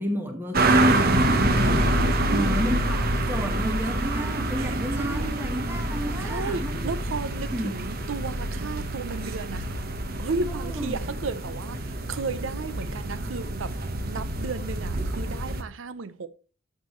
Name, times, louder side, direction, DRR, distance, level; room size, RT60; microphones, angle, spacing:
voice 1, 0.0-2.0 2.3-6.9 7.5-7.8 10.5-10.9, equal, 10° right, 1.2 m, -31 dB
sound 1, 0.5-15.6, right 1 dB, 50° right, 1.1 m, -26 dB
voice 2, 2.3-2.6 4.6-5.5 6.2-9.8 10.2-13.7 14.0-16.3, right 4 dB, 80° right, 0.6 m, -34 dB
12.0 x 7.5 x 3.1 m
head